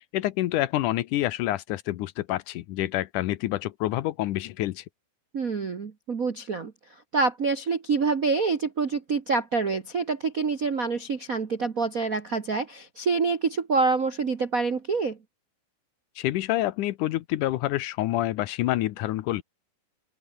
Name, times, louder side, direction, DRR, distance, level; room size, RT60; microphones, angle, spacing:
voice 1, 0.1-4.8 16.2-19.4, left 15 dB, 75° left, 2.3 m, -27 dB
voice 2, 5.3-6.7 7.1-15.2, right 4 dB, 55° right, 0.9 m, -26 dB
open air
omnidirectional pair, 3.8 m